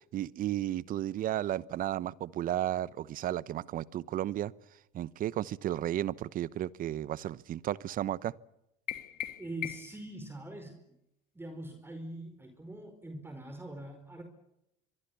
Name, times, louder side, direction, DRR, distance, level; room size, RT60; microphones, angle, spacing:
voice 1, 0.0-4.5 4.9-8.3, right 12 dB, 50° right, 20 dB, 1.0 m, -33 dB
sound 1, 8.9-10.1, left 12 dB, 55° left, 2.4 m, -39 dB
voice 2, 9.4-10.8 11.3-14.2, right 1 dB, 15° right, 7 dB, 4.8 m, -43 dB
26.0 x 23.0 x 7.0 m, 0.85 s
hypercardioid pair, 75°, 18 cm